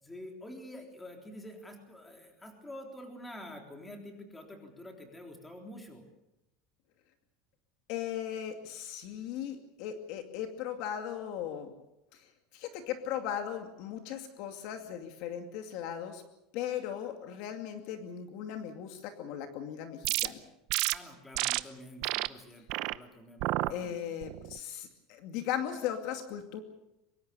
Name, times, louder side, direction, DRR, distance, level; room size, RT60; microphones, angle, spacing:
voice 1, 0.0-6.1 20.9-24.0, left 1 dB, 5° left, 2 dB, 3.6 m, -47 dB
voice 2, 7.9-11.7 12.5-16.2 16.5-20.4 23.7-26.6, left 9 dB, 50° left, 5 dB, 2.4 m, -37 dB
sound 1, 20.0-20.3 20.7-20.9 21.3-21.6 22.0-22.3 22.7-22.9 23.4-23.7 24.2-24.6, right 19 dB, 50° right, 0.8 m, -30 dB
24.5 x 22.5 x 7.0 m, 0.90 s
cardioid pair, 175°, 0 cm